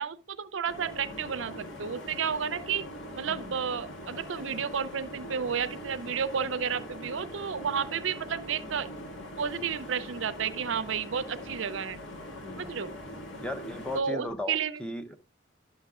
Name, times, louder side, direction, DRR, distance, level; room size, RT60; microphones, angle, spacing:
voice 1, 0.0-2.8 3.2-8.9 9.4-12.0 12.6-12.9 13.9-14.8, right 7 dB, 75° right, 0.5 m, -32 dB
sound 1, 0.7-14.0, equal, 70° left, 1.9 m, -42 dB
voice 2, 3.3-3.6 7.7-7.9 12.4-12.8 13.4-15.1, left 1 dB, 5° left, 0.7 m, -38 dB
11.0 x 6.8 x 2.4 m
head